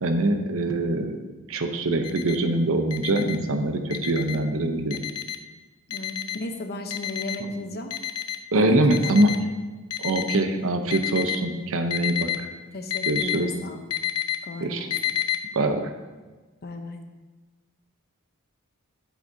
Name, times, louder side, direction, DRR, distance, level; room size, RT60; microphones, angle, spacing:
voice 1, 0.0-1.1 1.5-5.0 8.5-9.4 10.0-12.5 13.1-13.5 14.6-14.9 15.5-15.9, right 1 dB, 65° right, 6 dB, 0.8 m, -23 dB
Alarm, 2.0-2.4 2.9-3.4 3.9-4.4 4.9-5.4 5.9-6.4 6.9-7.4 7.9-8.4 8.9-9.4 9.9-10.4 10.9-11.4 11.9-12.4 12.9-13.4 13.9-14.4 14.9-15.4, left 12 dB, 80° left, 0.6 m, -29 dB
voice 2, 5.9-7.9 8.5-9.0 12.7-13.8 14.4-14.9 16.6-17.0, left 1 dB, 45° left, 5 dB, 0.8 m, -35 dB
10.5 x 8.2 x 2.8 m, 1.3 s
head